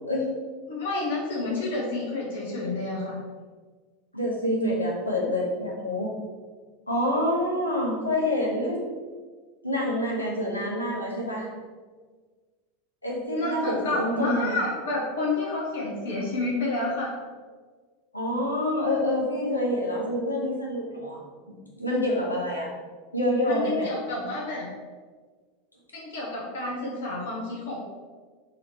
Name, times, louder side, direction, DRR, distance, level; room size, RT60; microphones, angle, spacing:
voice 1, 0.7-3.2 13.3-17.1 23.4-24.7 25.9-27.8, left 2 dB, 65° left, -3 dB, 0.8 m, -29 dB
voice 2, 4.1-6.1 6.9-8.9 9.6-11.5 13.0-14.6 18.1-21.2 21.5-22.7 23.1-23.9, left 1 dB, 85° left, -3 dB, 1.0 m, -27 dB
4.0 x 2.9 x 4.4 m, 1.5 s
figure-of-eight pair, 85°, 0 cm